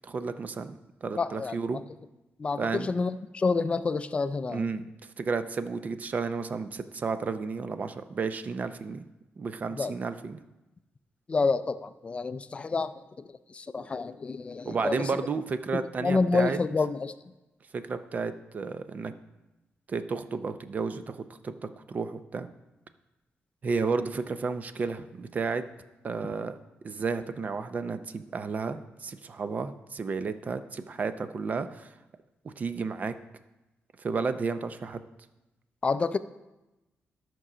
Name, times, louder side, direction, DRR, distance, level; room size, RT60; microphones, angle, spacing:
voice 1, 0.0-1.8 2.6-2.9 4.5-4.8 5.2-9.0 9.4-10.4 14.7-16.6 17.7-19.1 19.9-22.5 23.6-25.6 26.0-26.6 26.8-31.9 32.4-33.2 34.0-35.0, right 4 dB, 40° right, 11 dB, 0.5 m, -32 dB
voice 2, 1.2-1.6 2.4-4.7 9.8-9.9 11.3-12.9 13.5-15.1 15.7-17.1 35.8-36.2, left 4 dB, 30° left, 12 dB, 0.4 m, -28 dB
12.5 x 6.1 x 5.0 m, 1.0 s
wide cardioid pair, 145°, 4 cm